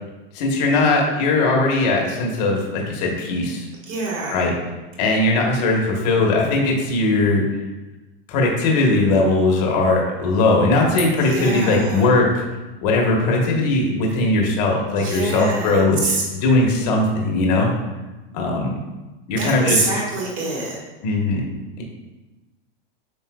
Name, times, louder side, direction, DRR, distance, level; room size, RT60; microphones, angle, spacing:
voice 1, 0.3-3.7 4.3-4.5 5.0-7.4 8.3-12.4 12.8-17.7 18.3-18.8 19.3-19.8 21.0-21.4 21.8-21.9, left 2 dB, 45° left, 0 dB, 1.3 m, -19 dB
voice 2, 3.9-4.5 11.2-12.1 15.0-16.2 19.4-20.8, right 3 dB, 25° right, -2 dB, 1.6 m, -25 dB
7.7 x 5.8 x 2.4 m, 1.1 s
supercardioid pair, 170°, 29 cm